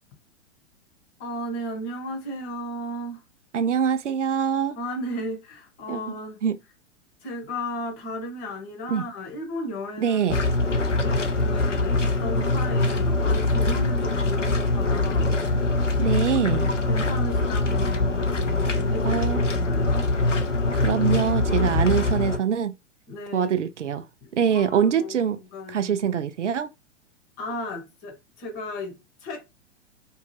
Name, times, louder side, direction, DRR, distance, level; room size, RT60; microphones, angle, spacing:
voice 1, 1.2-3.2 4.8-6.4 7.2-10.3 11.0-15.5 16.9-20.1 23.1-23.5 24.2-25.1 25.5-26.1 27.4-29.5, left 1 dB, 25° left, 0.8 m, -35 dB
voice 2, 3.5-4.8 5.9-6.2 6.4-6.6 8.9-9.0 10.0-10.4 16.0-16.7 19.0-19.4 20.8-22.7 23.3-24.1 24.3-25.4 25.7-26.7, right 8 dB, 75° right, 0.5 m, -24 dB
sound 1, 10.3-22.4, left 2 dB, 90° left, 0.6 m, -23 dB
2.7 x 2.3 x 3.1 m
figure-of-eight pair, 105°, 36 cm